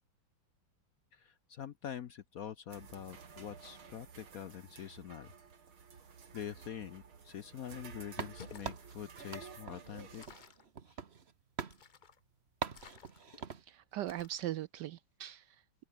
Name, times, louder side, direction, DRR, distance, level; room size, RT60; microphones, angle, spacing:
voice 1, 1.1-5.3 6.3-10.2 10.9-11.0, left 9 dB, 60° left, 1.0 m, -45 dB
sound 1, 2.7-10.3, right 6 dB, 90° right, 3.5 m, -53 dB
sound 2, 8.2-11.3 11.6-11.8 12.6-13.6, right 6 dB, 35° right, 1.3 m, -43 dB
sound 3, 8.4-8.7 10.2-10.7 11.7-12.2 12.7-13.4 14.1-14.5, left 6 dB, 90° left, 0.4 m, -55 dB
voice 2, 13.4-15.6, right 13 dB, 75° right, 1.0 m, -40 dB
open air
omnidirectional pair, 2.2 m